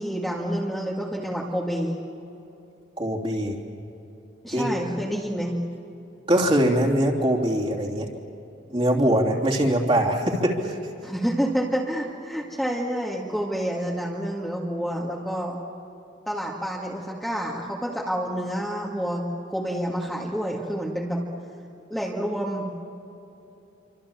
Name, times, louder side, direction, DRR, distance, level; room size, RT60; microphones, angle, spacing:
voice 1, 0.0-2.0 4.4-5.6 11.0-15.6 16.3-19.2 19.5-21.2 21.9-22.7, equal, ahead, -4 dB, 2.1 m, -28 dB
voice 2, 3.0-3.6 4.5-4.8 6.3-8.1 8.7-10.8, right 1 dB, 25° right, -1 dB, 3.1 m, -22 dB
28.0 x 25.5 x 7.3 m, 2.9 s
head